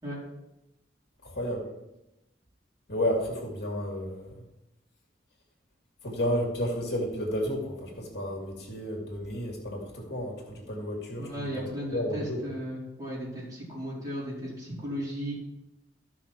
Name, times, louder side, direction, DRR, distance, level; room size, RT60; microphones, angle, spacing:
voice 1, 1.2-1.7 2.9-4.3 6.0-12.6, equal, 65° left, -1 dB, 2.5 m, -32 dB
voice 2, 11.2-15.3, equal, 20° right, -7 dB, 4.4 m, -35 dB
14.0 x 6.0 x 4.4 m, 0.92 s
head